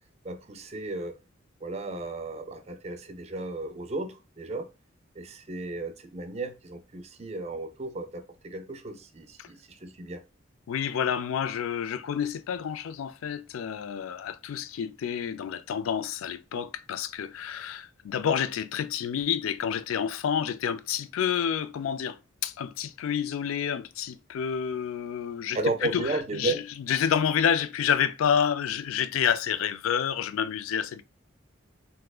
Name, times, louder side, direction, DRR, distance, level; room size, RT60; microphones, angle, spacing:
voice 1, 0.2-1.1 1.6-4.7 5.2-10.2 25.5-26.6, right 2 dB, 30° right, 0.4 m, -34 dB
voice 2, 10.7-31.0, left 8 dB, 85° left, 0.3 m, -29 dB
3.5 x 2.8 x 2.3 m
head